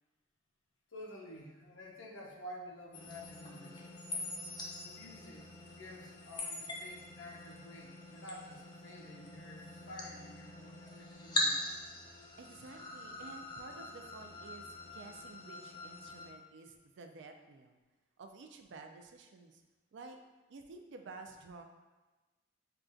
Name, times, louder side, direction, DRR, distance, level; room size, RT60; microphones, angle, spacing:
voice 1, 0.9-3.9 4.8-11.7, left 1 dB, 70° left, -1 dB, 0.6 m, -50 dB
sound 1, 2.9-16.3, left 1 dB, 25° left, 0.4 m, -42 dB
voice 2, 12.4-17.8 18.2-19.6 19.9-20.2 20.5-21.6, right 3 dB, 60° right, 4 dB, 0.3 m, -52 dB
5.5 x 2.3 x 2.5 m, 1.2 s
head